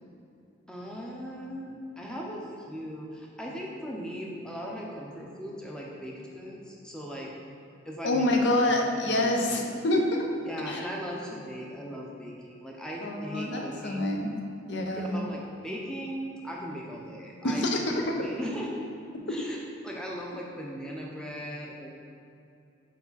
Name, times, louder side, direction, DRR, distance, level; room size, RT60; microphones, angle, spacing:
voice 1, 0.7-7.3 7.8-9.5 10.4-14.1 14.9-17.9 18.2-18.9 19.3-19.6 19.8-21.9, equal, 5° left, -3 dB, 0.7 m, -38 dB
voice 2, 8.0-10.3 10.7-10.8 13.0-14.3 14.7-15.2 17.4-17.9, left 1 dB, 60° left, 1 dB, 0.7 m, -26 dB
5.6 x 4.7 x 4.1 m, 2.6 s
head